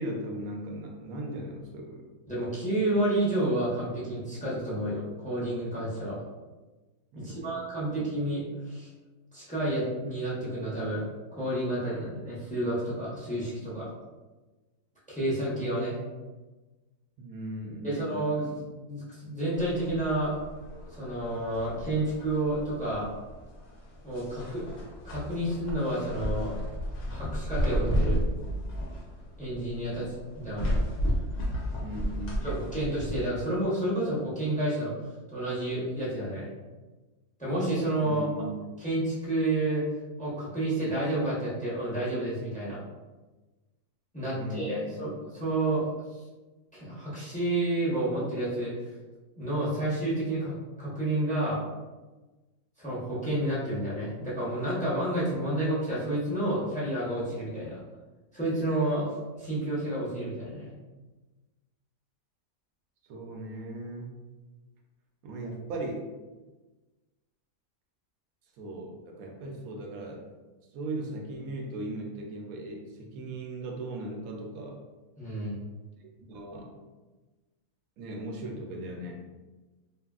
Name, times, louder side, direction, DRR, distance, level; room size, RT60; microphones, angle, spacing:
voice 1, 0.0-2.1 7.1-7.6 17.2-18.4 31.8-32.6 38.0-38.6 44.3-45.0 63.1-64.1 65.2-66.1 68.6-70.3 70.7-74.8 76.0-76.7 78.0-79.3, right 1 dB, 70° right, 1 dB, 0.9 m, -38 dB
voice 2, 2.3-6.2 7.1-8.9 9.3-11.1 11.3-13.9 15.1-16.0 17.8-18.6 18.8-20.3 20.9-23.1 24.0-24.6 25.0-26.5 27.1-28.2 29.4-30.8 32.4-34.9 35.3-36.5 37.4-38.3 38.8-39.9 40.2-42.8 44.1-45.9 46.7-48.7 49.4-51.6 52.8-57.8 58.3-59.1 59.3-60.7 75.2-75.6, right 1 dB, 5° left, -9 dB, 0.6 m, -30 dB
sound 1, 19.5-33.2, equal, 60° left, 0.9 m, -33 dB
2.9 x 2.6 x 2.3 m, 1.2 s
omnidirectional pair, 1.8 m